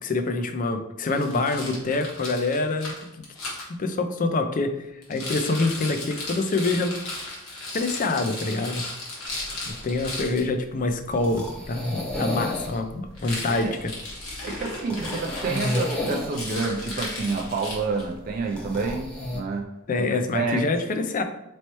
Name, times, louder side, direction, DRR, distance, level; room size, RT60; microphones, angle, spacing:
voice 1, 0.0-2.9 3.8-6.9 7.7-8.8 9.7-13.9 14.4-14.5 19.9-21.2, left 3 dB, 40° left, 8 dB, 0.4 m, -26 dB
Rattle, 1.1-3.7 5.0-10.4 13.1-18.1, left 2 dB, 75° left, 1.4 m, -35 dB
sound 1, 9.3-19.4, left 1 dB, 5° left, 0.9 m, -33 dB
voice 2, 14.4-19.7 19.9-20.0 20.3-20.6, right 4 dB, 45° right, 0 dB, 0.4 m, -28 dB
4.2 x 3.1 x 2.9 m, 0.89 s
head